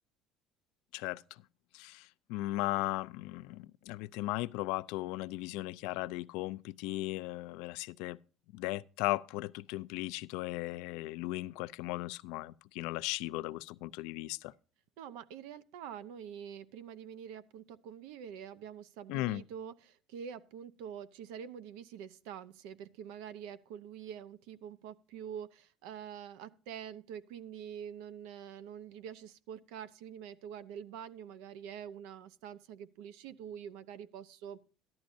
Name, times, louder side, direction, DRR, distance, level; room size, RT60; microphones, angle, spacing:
voice 1, 1.7-8.2 8.5-14.5 19.1-19.4, left 19 dB, 80° left, 0.4 m, -37 dB
voice 2, 15.0-34.6, right 8 dB, 90° right, 0.8 m, -46 dB
13.5 x 11.5 x 2.6 m
cardioid pair, 145°, 0 cm